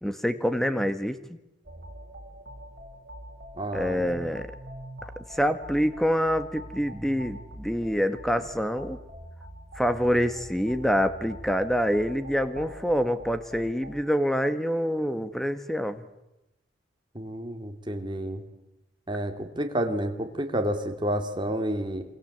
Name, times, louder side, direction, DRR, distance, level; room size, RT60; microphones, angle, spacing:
voice 1, 0.0-1.4 3.7-4.5 5.3-9.0 9.8-16.0, equal, ahead, 10 dB, 1.6 m, -26 dB
sound 1, 1.6-14.0, right 1 dB, 50° right, 5.1 m, -44 dB
voice 2, 3.6-4.1 17.1-18.4 19.1-22.0, right 1 dB, 25° right, 5 dB, 2.9 m, -30 dB
28.0 x 24.5 x 8.2 m, 0.92 s
head